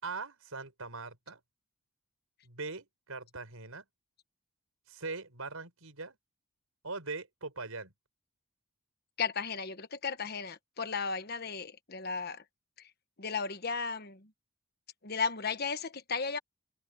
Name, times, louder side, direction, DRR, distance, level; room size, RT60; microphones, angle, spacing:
voice 1, 0.0-1.4 2.4-3.9 4.9-6.2 6.8-7.9, right 3 dB, 85° right, 5.4 m, -41 dB
voice 2, 9.2-12.4 13.2-14.3 15.0-16.4, left 5 dB, 45° left, 1.3 m, -35 dB
head